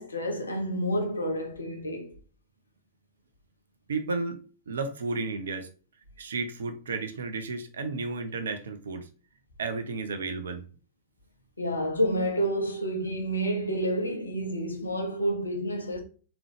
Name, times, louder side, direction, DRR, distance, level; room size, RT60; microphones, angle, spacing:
voice 1, 0.0-2.2 11.6-16.0, equal, 80° left, 0.8 m, -29 dB
voice 2, 3.9-4.4 4.7-5.7 6.2-9.1 9.6-10.6, right 3 dB, 65° right, 0.5 m, -32 dB
3.6 x 3.0 x 3.3 m
figure-of-eight pair, 90°, 0 cm